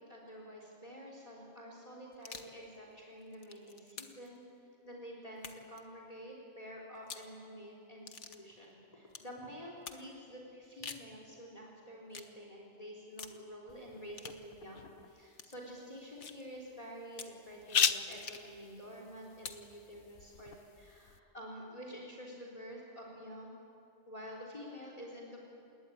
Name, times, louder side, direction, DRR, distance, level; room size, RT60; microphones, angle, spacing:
voice 1, 0.1-4.4 4.8-23.5 24.1-25.4, equal, 30° left, -1 dB, 3.6 m, -49 dB
sound 1, 2.1-2.6 3.2-4.3 5.4-5.8 7.0-7.3 8.1-8.4 9.1-9.3 9.9-10.1 10.6-11.1 12.1-12.3 13.2-13.4 14.1-14.4 15.3-15.6 16.2-16.4 17.1-17.4 18.1-18.5 19.4-19.7, left 5 dB, 70° left, 1.7 m, -48 dB
sound 2, 13.7-21.2, left 7 dB, 50° left, 1.0 m, -39 dB
27.5 x 20.5 x 9.8 m, 2.6 s
omnidirectional pair, 1.2 m